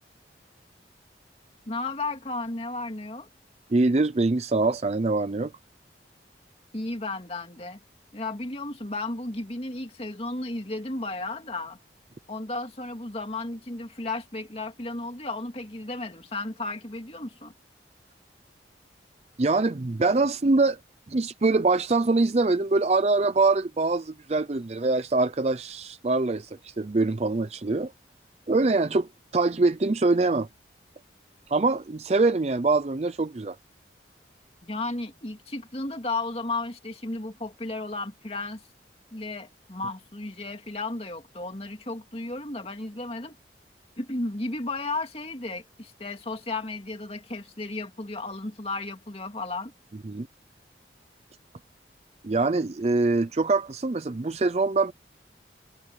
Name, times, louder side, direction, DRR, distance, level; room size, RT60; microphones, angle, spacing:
voice 1, 1.7-3.3 6.7-7.8 8.1-11.8 12.3-17.5 34.6-38.6 39.1-43.4 44.0-49.7, left 2 dB, 35° left, 2.5 m, -34 dB
voice 2, 3.7-5.5 19.4-20.8 21.1-27.9 28.5-30.5 31.5-33.6 50.0-50.3 52.2-54.9, right 3 dB, 35° right, 0.5 m, -24 dB
head